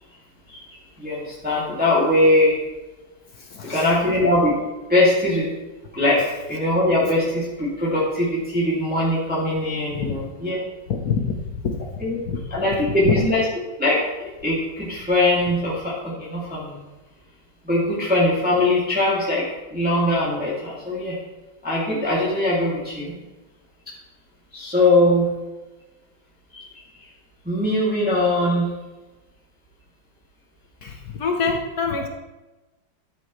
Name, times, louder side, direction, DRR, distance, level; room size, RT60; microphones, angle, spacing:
voice 1, 1.0-2.6 3.6-4.6 4.9-5.5 5.9-6.2 6.5-10.6 12.0-12.2 12.5-13.5 13.8-14.0 14.4-16.8 17.6-19.4 19.7-21.2 21.6-23.1 24.5-25.3 26.5-26.8 27.4-28.7, left 1 dB, 5° right, -8 dB, 2.3 m, -21 dB
voice 2, 3.5-3.8 9.9-10.1 10.9-11.4 11.6-11.8 12.3-12.4 13.0-13.1 30.8-32.1, left 6 dB, 55° left, 2 dB, 1.2 m, -25 dB
13.5 x 7.6 x 3.2 m, 1.1 s
omnidirectional pair, 2.3 m